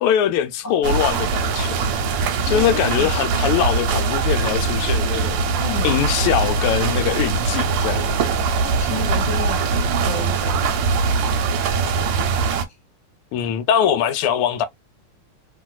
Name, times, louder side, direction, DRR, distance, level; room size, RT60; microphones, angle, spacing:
voice 1, 0.0-1.9 2.2-5.5 5.8-8.2 13.3-14.7, left 9 dB, 85° left, 1.5 m, -22 dB
sound 1, 0.8-12.7, right 4 dB, 70° right, 1.2 m, -21 dB
voice 2, 2.4-3.4 5.6-6.0 8.6-10.9 11.7-12.8, left 5 dB, 10° left, 1.3 m, -33 dB
3.1 x 2.9 x 2.2 m
omnidirectional pair, 2.3 m